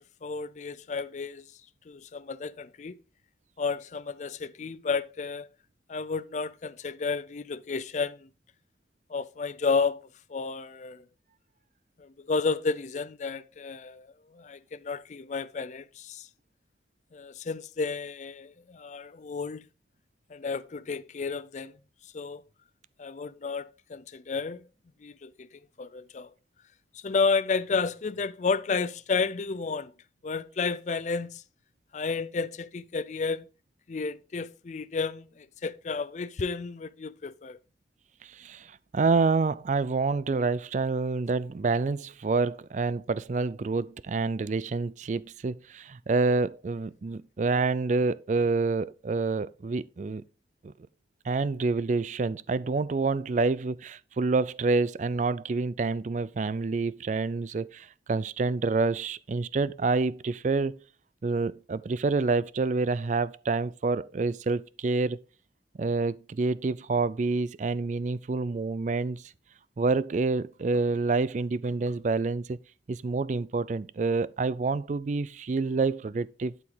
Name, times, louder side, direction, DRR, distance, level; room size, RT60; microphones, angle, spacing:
voice 1, 0.0-1.5 1.9-3.0 3.6-5.5 5.9-8.3 9.1-10.0 10.3-11.0 12.0-16.3 17.1-19.6 20.3-21.8 22.0-22.4 23.0-24.6 25.0-26.3 26.9-29.9 30.2-31.4 31.9-33.5 33.9-37.6, left 4 dB, 40° left, 0.4 m, -32 dB
voice 2, 38.2-50.2 50.6-50.7 51.2-60.8 61.2-65.2 65.8-69.2 69.8-72.6 72.9-76.5, right 3 dB, 40° right, 0.4 m, -28 dB
12.0 x 4.9 x 3.9 m
head